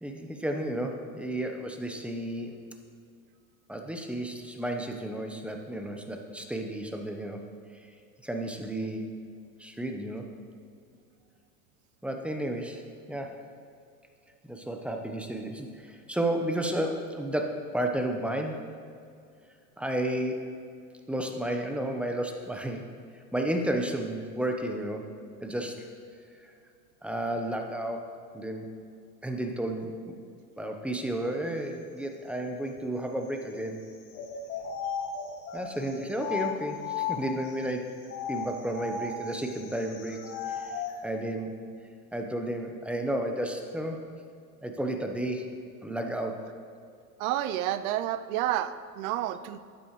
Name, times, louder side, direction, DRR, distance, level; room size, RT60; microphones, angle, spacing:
voice 1, 0.0-2.6 3.7-7.5 8.2-9.2 9.6-10.3 12.0-12.8 13.1-13.3 14.4-18.7 19.8-20.5 21.1-22.9 23.3-25.1 25.4-25.9 26.4-26.5 27.0-28.8 29.2-30.2 30.6-33.9 35.5-37.9 38.3-40.2 40.5-40.7 41.0-41.7 42.1-44.1 44.6-45.5 45.8-46.5, right 1 dB, 5° right, 3 dB, 0.9 m, -32 dB
sound 1, 34.1-37.5 38.0-41.0, left 7 dB, 75° left, 1.5 m, -35 dB
voice 2, 47.2-49.6, right 12 dB, 65° right, 12 dB, 0.7 m, -30 dB
12.0 x 8.6 x 3.2 m, 2.4 s
hypercardioid pair, 95°, 46 cm